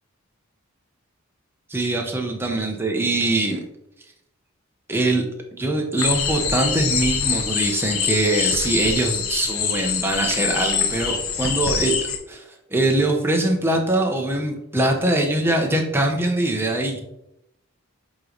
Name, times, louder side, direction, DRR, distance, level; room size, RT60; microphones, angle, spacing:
voice 1, 1.7-3.6 4.9-5.2 5.6-11.9 12.3-12.4 12.7-17.0, right 2 dB, 10° right, 1 dB, 0.8 m, -22 dB
sound 1, 6.0-12.2, left 7 dB, 80° left, 0.9 m, -24 dB
8.4 x 3.1 x 3.9 m, 0.83 s
head